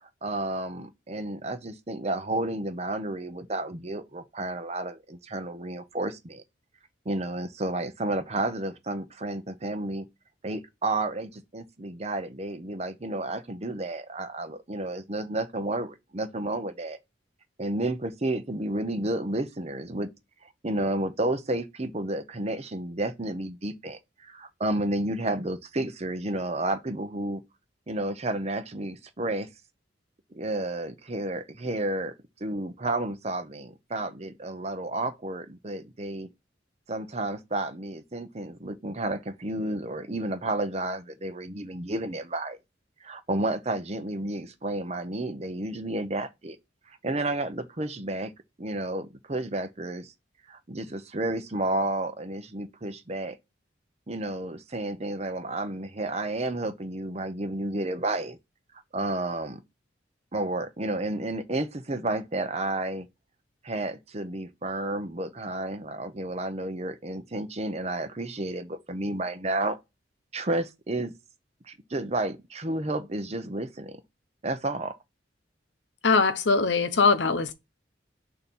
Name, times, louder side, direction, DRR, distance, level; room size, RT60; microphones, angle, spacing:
voice 1, 0.0-6.4 7.1-10.1 10.4-17.0 17.6-20.1 20.6-27.4 27.9-29.5 30.3-32.1 32.4-36.3 36.9-42.6 43.0-46.6 47.0-48.3 48.6-50.1 50.5-53.4 54.1-58.4 58.9-59.6 60.3-63.1 63.6-69.8 70.3-71.1 71.7-74.0 74.4-75.0, right 2 dB, 35° right, 0.7 m, -31 dB
voice 2, 76.0-77.5, left 4 dB, 75° left, 0.8 m, -22 dB
6.7 x 2.8 x 5.3 m
head